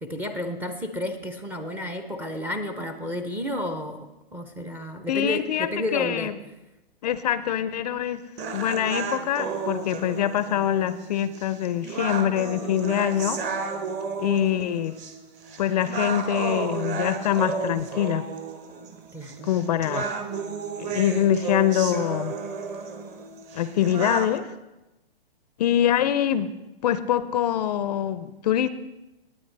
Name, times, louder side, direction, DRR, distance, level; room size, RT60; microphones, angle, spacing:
voice 1, 0.0-6.3 19.1-19.5, left 1 dB, 5° right, 7 dB, 0.5 m, -31 dB
voice 2, 5.1-6.4 7.0-8.2 8.5-13.4 14.2-14.9 15.6-18.3 19.4-20.1 20.8-22.4 23.5-24.5 25.6-26.5 26.8-28.7, left 10 dB, 40° left, 15 dB, 0.5 m, -24 dB
sound 1, 8.4-24.4, right 5 dB, 25° right, 1.0 m, -33 dB
19.0 x 8.9 x 3.3 m, 0.99 s
hypercardioid pair, 135°, 31 cm